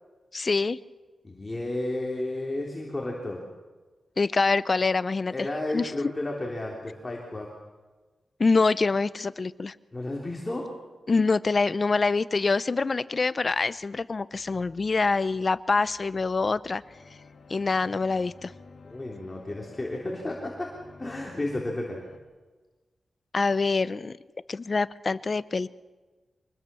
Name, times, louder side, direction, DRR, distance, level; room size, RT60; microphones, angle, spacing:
voice 1, 0.3-0.8 4.2-5.3 5.7-5.9 8.4-9.7 11.1-16.8 17.5-18.5 23.3-24.2 24.5-25.7, left 4 dB, 45° left, 17 dB, 0.6 m, -25 dB
voice 2, 1.2-3.4 5.3-7.5 9.9-10.7 18.8-20.7 21.0-22.0, left 2 dB, 25° left, -2 dB, 3.5 m, -32 dB
sound 1, 16.8-22.2, left 3 dB, 65° left, 3.0 m, -51 dB
24.5 x 20.0 x 7.0 m, 1.3 s
cardioid pair, 80°, 0 cm